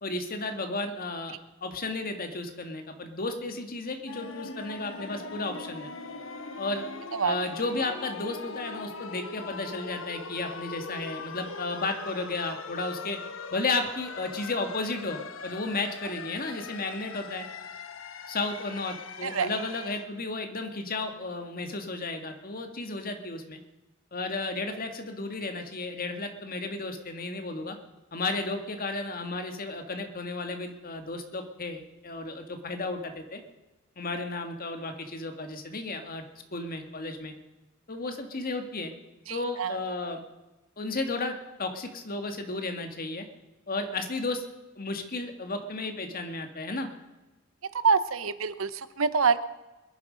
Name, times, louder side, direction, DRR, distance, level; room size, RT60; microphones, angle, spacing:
voice 1, 0.0-5.9 6.6-6.9 7.2-13.2 13.5-17.5 18.3-23.6 24.1-27.8 28.1-33.4 34.0-36.2 36.5-37.3 37.9-38.9 39.3-40.2 40.8-43.3 43.7-44.4 44.8-46.9, left 3 dB, 45° left, 5 dB, 1.8 m, -33 dB
sound 1, 4.1-20.1, left 4 dB, 70° left, 1.0 m, -41 dB
voice 2, 39.3-39.8 47.7-49.4, right 5 dB, 90° right, 13 dB, 0.9 m, -26 dB
22.5 x 11.0 x 5.2 m, 1.1 s
head